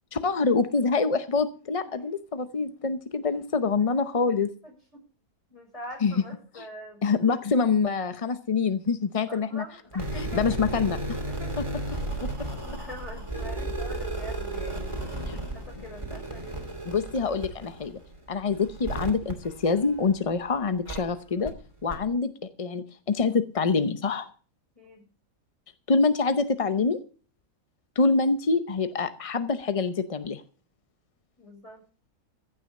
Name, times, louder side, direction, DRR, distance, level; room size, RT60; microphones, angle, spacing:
voice 1, 0.1-4.5 6.0-6.1 7.0-9.6 10.1-11.2 12.2-12.3 15.3-15.4 16.8-18.0 18.3-21.5 21.8-22.3 22.6-24.3 25.9-27.0 28.0-30.4, left 4 dB, 40° left, 11 dB, 0.5 m, -25 dB
voice 2, 4.6-5.0 5.5-7.0 9.3-10.6 11.4-11.5 12.6-16.7 24.7-25.0 31.4-31.8, equal, 25° left, 0 dB, 6.4 m, -44 dB
sound 1, 9.9-20.3 20.9-21.0 21.5-21.6 21.9-22.0, right 1 dB, 20° right, 2.7 m, -34 dB
15.0 x 6.2 x 8.4 m, 0.39 s
omnidirectional pair, 1.6 m